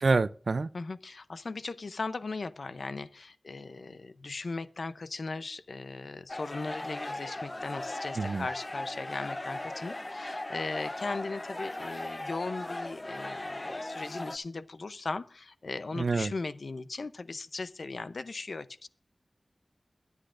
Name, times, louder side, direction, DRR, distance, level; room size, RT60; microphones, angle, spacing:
voice 1, 0.0-0.7 8.2-8.5 15.9-16.3, right 3 dB, 75° right, 0.4 m, -27 dB
voice 2, 0.7-18.9, left 3 dB, 80° left, 0.6 m, -38 dB
sound 1, 6.3-14.4, left 1 dB, 30° left, 0.6 m, -38 dB
22.0 x 8.2 x 2.5 m
wide cardioid pair, 60°, 0 cm